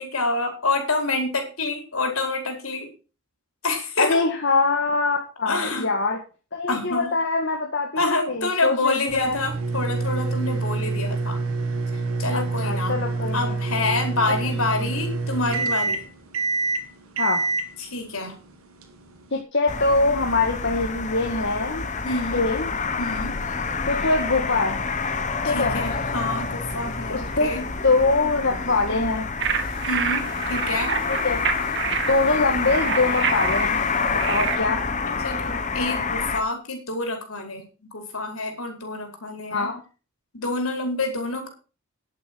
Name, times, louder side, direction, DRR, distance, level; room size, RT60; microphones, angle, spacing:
voice 1, 0.0-2.9 3.6-4.2 5.5-5.9 6.7-7.1 8.0-11.4 12.2-13.0 13.3-16.0 17.8-18.4 22.0-22.4 23.0-23.4 25.4-27.6 29.8-30.9 35.0-37.6 37.9-39.7 40.3-41.5, left 2 dB, 75° left, 4 dB, 4.6 m, -27 dB
voice 2, 4.0-6.2 6.5-9.4 12.3-13.6 14.3-14.4 14.8-14.9 17.2-17.4 19.3-21.8 22.3-22.7 23.9-24.8 25.5-25.8 27.1-27.6 27.8-29.3 31.1-31.4 32.1-33.8 34.3-34.8 39.5-39.8, left 3 dB, 55° left, 1 dB, 1.8 m, -23 dB
sound 1, 9.1-19.4, right 3 dB, 80° right, 2.3 m, -27 dB
sound 2, 19.7-36.4, left 4 dB, 35° left, 1.4 m, -28 dB
sound 3, 29.4-34.6, right 7 dB, 55° right, 1.8 m, -28 dB
11.0 x 8.9 x 6.2 m, 0.35 s
head